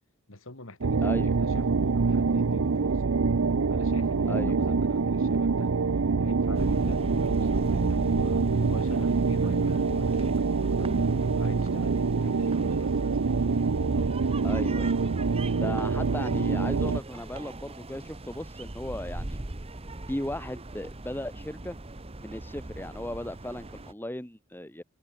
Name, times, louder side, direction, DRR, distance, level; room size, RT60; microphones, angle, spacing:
voice 1, 0.3-3.0 3.7-5.7 6.2-13.2, left 2 dB, 70° left, 3.2 m, -44 dB
sound 1, 0.8-17.0, right 4 dB, 75° right, 0.6 m, -25 dB
voice 2, 1.0-1.3 4.3-4.6 14.4-15.0 15.6-19.4 20.1-21.8 22.2-24.8, left 1 dB, 10° left, 1.8 m, -36 dB
sound 2, 6.5-23.9, right 1 dB, 30° right, 1.1 m, -39 dB
head